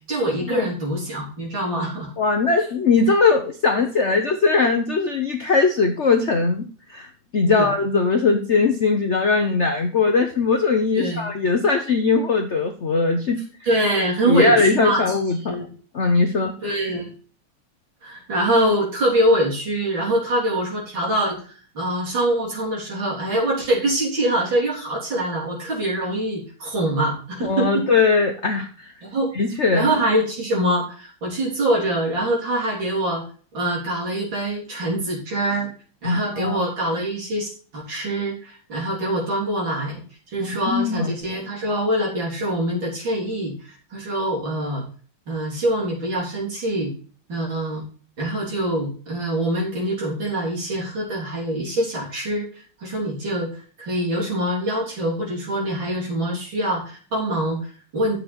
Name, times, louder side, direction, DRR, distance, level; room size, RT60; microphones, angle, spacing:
voice 1, 0.1-2.1 7.5-7.7 10.9-11.2 13.7-15.7 16.6-17.1 18.0-27.8 29.0-29.3 29.7-33.2 33.5-35.7 36.0-40.0 40.3-44.8 45.3-46.9 47.3-47.8 48.2-53.5 53.8-58.2, right 1 dB, 60° right, -3 dB, 4.4 m, -24 dB
voice 2, 2.2-13.4 14.2-15.6 15.9-16.5 27.4-28.9 29.3-29.9 36.0-36.7 40.7-41.2, left 4 dB, 50° left, 5 dB, 0.8 m, -20 dB
10.0 x 7.4 x 4.3 m, 0.41 s
omnidirectional pair, 2.4 m